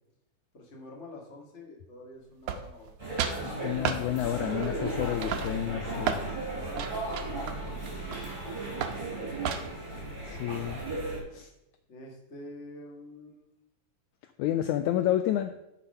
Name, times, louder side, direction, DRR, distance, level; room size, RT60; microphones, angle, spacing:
voice 1, 0.5-3.0 5.6-7.9 8.5-9.3 11.9-13.5, left 1 dB, 30° left, 0 dB, 1.5 m, -48 dB
sound 1, 2.5-2.9 3.2-3.4 3.8-4.0 4.6-4.9 5.2-6.3 6.8-8.4 8.8-9.0 9.4-9.9, right 7 dB, 85° right, 1.4 m, -33 dB
sound 2, 3.0-11.2, right 2 dB, 15° right, 3.3 m, -35 dB
voice 2, 3.4-6.2 10.2-10.8 11.3-11.5 14.4-15.5, left 12 dB, 85° left, 9 dB, 1.7 m, -30 dB
10.0 x 5.8 x 5.5 m, 0.89 s
omnidirectional pair, 3.9 m